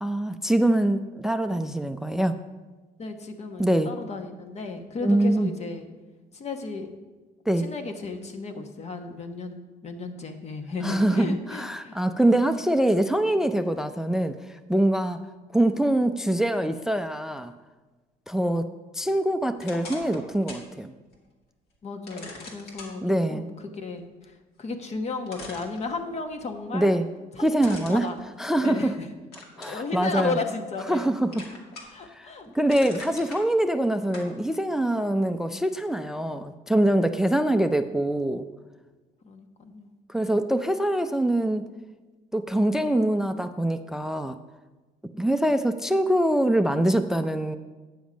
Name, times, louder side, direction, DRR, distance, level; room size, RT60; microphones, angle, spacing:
voice 1, 0.0-2.3 3.6-3.9 5.0-5.5 7.5-7.7 10.8-14.3 14.7-15.2 15.5-17.5 18.3-18.7 18.9-20.9 23.0-23.5 26.7-27.1 27.4-28.1 28.4-28.9 29.6-30.4 30.9-31.4 32.1-32.3 32.5-38.5 40.1-41.7 42.3-44.4 45.2-47.6, right 1 dB, 5° right, 9 dB, 0.4 m, -24 dB
voice 2, 3.0-5.9 6.3-6.9 7.6-12.0 21.8-26.9 27.3-28.2 28.6-29.1 29.7-31.4 31.9-32.5 33.0-33.2 39.2-39.9 45.1-45.4, left 3 dB, 40° left, 6 dB, 1.2 m, -34 dB
sound 1, 19.6-20.7 21.1-21.2 22.1-22.9 24.7-24.8 25.3-26.4 27.6-28.9 29.3-29.8 30.4-31.0 31.3-32.1 32.4-33.4 34.1-34.3, left 2 dB, 70° left, 2.2 m, -42 dB
9.3 x 7.1 x 5.1 m, 1.2 s
cardioid pair, 110°, 17 cm